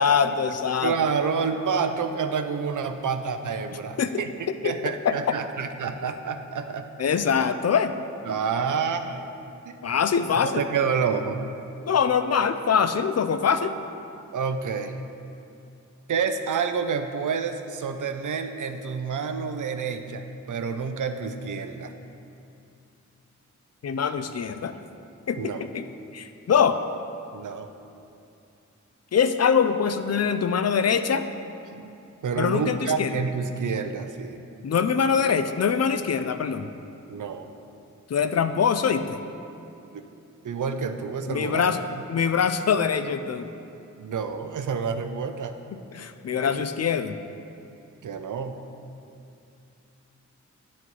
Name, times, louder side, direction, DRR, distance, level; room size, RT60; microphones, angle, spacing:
voice 1, 0.0-0.9 4.0-4.1 4.6-4.7 5.0-5.2 7.0-7.9 9.8-10.6 11.9-13.7 23.8-24.7 25.3-25.8 26.1-26.8 29.1-31.3 32.4-33.1 34.6-36.6 38.1-39.0 41.3-41.8 42.1-43.5 45.9-47.2, left 6 dB, 55° left, 10 dB, 0.5 m, -23 dB
voice 2, 0.8-6.9 8.2-9.3 9.6-9.8 10.3-11.4 14.3-15.0 16.1-21.9 25.4-25.7 27.3-27.7 31.7-31.9 32.2-34.4 37.1-37.5 39.9-40.0 40.4-42.0 44.0-45.5 48.0-48.6, right 6 dB, 80° right, 8 dB, 0.5 m, -28 dB
9.2 x 4.2 x 4.5 m, 2.7 s
cardioid pair, 50°, 31 cm